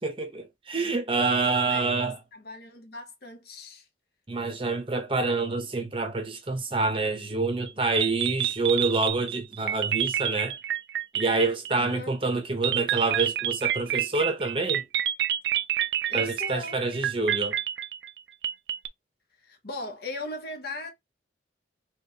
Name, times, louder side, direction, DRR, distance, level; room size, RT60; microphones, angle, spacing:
voice 1, 0.0-2.2 4.3-10.6 11.1-14.9 16.1-17.6, right 3 dB, 30° right, 0.7 m, -27 dB
voice 2, 1.5-3.9 11.8-12.2 16.1-16.8 19.4-20.9, left 2 dB, 55° left, 0.9 m, -39 dB
sound 1, 7.7-7.8 8.0-11.9 12.6-18.9, right 11 dB, 60° right, 0.3 m, -28 dB
3.5 x 3.0 x 2.8 m
head